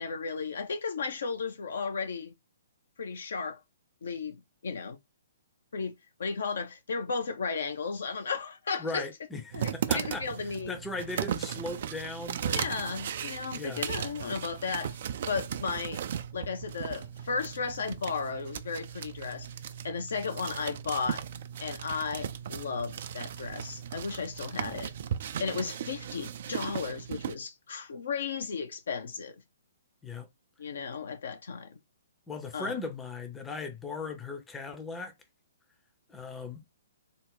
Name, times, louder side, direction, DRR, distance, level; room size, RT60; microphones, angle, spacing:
voice 1, 0.0-2.3 3.0-3.6 4.0-4.4 4.6-5.0 5.7-5.9 6.2-9.0 9.5-10.8 12.4-16.0 16.3-19.5 19.8-21.2 21.6-24.9 25.4-29.4 30.6-31.8 32.5-32.8, left 5 dB, 60° left, 0.6 m, -34 dB
voice 2, 8.8-12.6 13.2-13.8 30.0-30.3 32.3-35.1 36.1-36.6, left 3 dB, 10° left, 0.6 m, -38 dB
sound 1, 9.5-27.3, right 9 dB, 45° right, 0.3 m, -37 dB
3.7 x 2.1 x 3.7 m
figure-of-eight pair, 125°, 0 cm